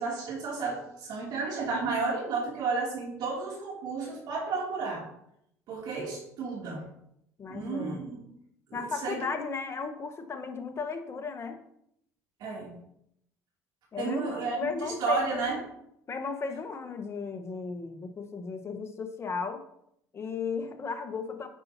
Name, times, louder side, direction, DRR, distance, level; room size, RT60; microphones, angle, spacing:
voice 1, 0.0-5.0 5.7-6.8 7.5-8.2 8.7-9.2 12.4-12.7 14.0-15.6, right 4 dB, 60° right, -3 dB, 2.7 m, -32 dB
voice 2, 7.4-8.0 8.7-11.6 13.9-15.6 16.1-19.6 20.1-21.5, left 5 dB, 35° left, 6 dB, 1.2 m, -35 dB
9.7 x 5.7 x 2.8 m, 0.75 s
supercardioid pair, 80°, 8 cm